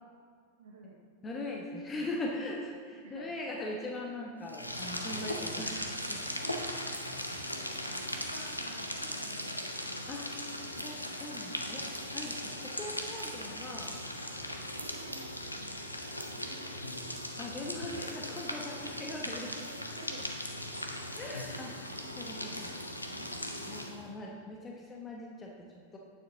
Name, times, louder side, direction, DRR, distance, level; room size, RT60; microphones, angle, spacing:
voice 1, 0.6-1.0 3.0-3.3 6.3-6.9 8.2-9.5 14.8-15.3 15.6-15.9 16.3-16.8 18.8-19.1 19.5-20.6, right 3 dB, 65° right, 0 dB, 0.7 m, -52 dB
voice 2, 1.2-6.2 9.0-9.1 10.1-10.3 10.8-13.9 17.4-19.5 21.2-21.8 22.1-22.8 23.0-23.1 23.7-26.0, left 2 dB, 20° left, -1 dB, 1.0 m, -41 dB
sound 1, 4.4-24.1, left 1 dB, 85° left, 0.7 m, -38 dB
9.1 x 7.2 x 3.8 m, 2.3 s
figure-of-eight pair, 90°, 0 cm